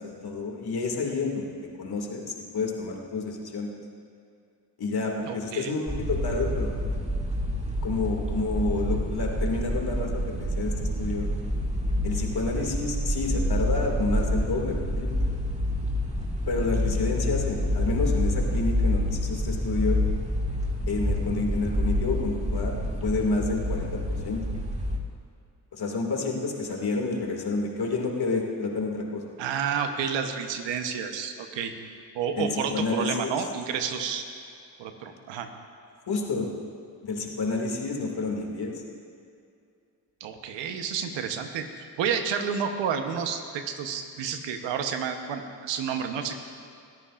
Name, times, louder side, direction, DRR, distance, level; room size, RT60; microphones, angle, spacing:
voice 1, 0.0-1.5 1.8-3.7 4.8-6.7 7.8-11.3 12.0-15.3 16.5-20.0 20.9-24.6 25.7-29.2 32.4-33.3 36.1-36.5 37.0-38.8, left 3 dB, 60° left, 0 dB, 2.4 m, -29 dB
voice 2, 5.3-5.8 29.4-31.7 32.1-34.2 34.8-35.5 40.2-41.7 42.0-46.4, right 7 dB, 90° right, 6 dB, 1.1 m, -30 dB
sound 1, 5.9-25.0, equal, 15° right, 2.1 m, -28 dB
21.5 x 14.0 x 2.5 m, 2.4 s
supercardioid pair, 55°, 43 cm